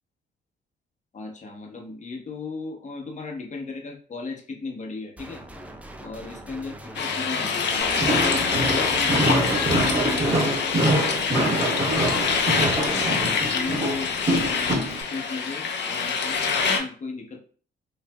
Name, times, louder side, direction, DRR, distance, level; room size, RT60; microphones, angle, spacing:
voice 1, 1.1-5.4 6.0-11.8 12.2-14.1 14.4-17.4, left 3 dB, 35° left, 1 dB, 0.9 m, -36 dB
sound 1, 5.2-10.4, right 2 dB, 5° right, 0.5 m, -41 dB
sound 2, 7.0-16.8, left 5 dB, 60° left, 0.7 m, -25 dB
Walk footsteps, 7.8-15.0, right 1 dB, 30° right, 1.2 m, -25 dB
4.8 x 2.5 x 2.2 m, 0.42 s
cardioid pair, 90°, 20 cm